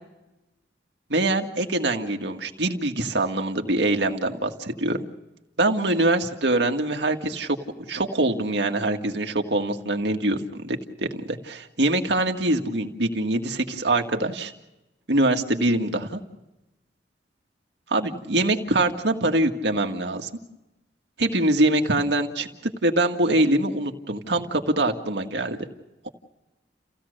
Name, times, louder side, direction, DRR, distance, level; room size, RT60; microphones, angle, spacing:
voice 1, 1.1-5.0 5.6-7.6 7.9-14.5 15.1-16.2 17.9-20.3 21.2-25.6, right 2 dB, 75° right, 4 dB, 2.0 m, -24 dB
30.0 x 16.5 x 6.7 m, 0.97 s
head